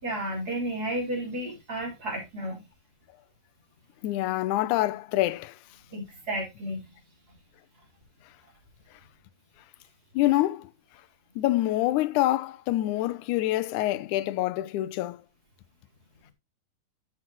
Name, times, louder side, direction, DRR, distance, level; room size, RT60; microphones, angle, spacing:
voice 1, 0.0-2.7 5.9-6.8, right 1 dB, 30° right, 4.5 m, -32 dB
voice 2, 4.0-5.6 10.1-10.7 11.4-15.2, left 16 dB, 80° left, 2.0 m, -26 dB
11.5 x 7.5 x 3.0 m
omnidirectional pair, 3.7 m